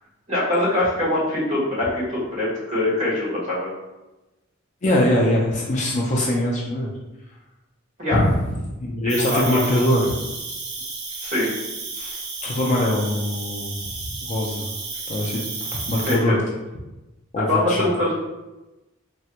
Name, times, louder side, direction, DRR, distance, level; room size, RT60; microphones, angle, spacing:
voice 1, 0.3-3.7 8.0-8.2 9.2-9.8 11.2-11.5 11.9-12.2 16.0-16.4 17.4-18.1, left 1 dB, 35° right, -6 dB, 1.1 m, -23 dB
voice 2, 4.8-6.9 8.1-8.3 8.8-10.2 12.4-14.7 15.1-16.4 17.3-17.9, left 1 dB, 35° left, -3 dB, 0.4 m, -22 dB
Cricket, 9.1-16.1, right 4 dB, 55° right, 0.7 m, -32 dB
3.3 x 2.2 x 2.8 m, 1.0 s
head